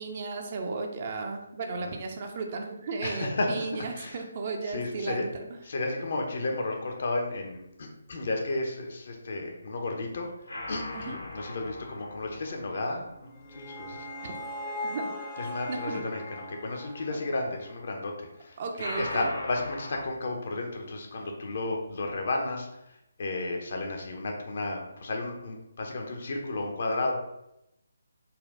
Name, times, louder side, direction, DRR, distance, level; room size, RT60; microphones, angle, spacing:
voice 1, 0.0-5.3 10.9-11.2 14.8-15.2 15.7-16.0 17.1-17.2 18.6-19.3, right 4 dB, 35° right, 3 dB, 0.5 m, -35 dB
voice 2, 3.0-4.2 4.7-5.3 5.6-10.3 10.7-14.1 15.4-18.6 19.0-27.1, left 2 dB, 50° left, 2 dB, 0.7 m, -33 dB
sound 1, 10.5-13.8 18.8-20.0, left 2 dB, 70° left, 1.2 m, -40 dB
sound 2, 13.1-18.3, left 1 dB, 10° left, 0.6 m, -40 dB
4.2 x 2.3 x 3.7 m, 0.84 s
figure-of-eight pair, 145°, 0 cm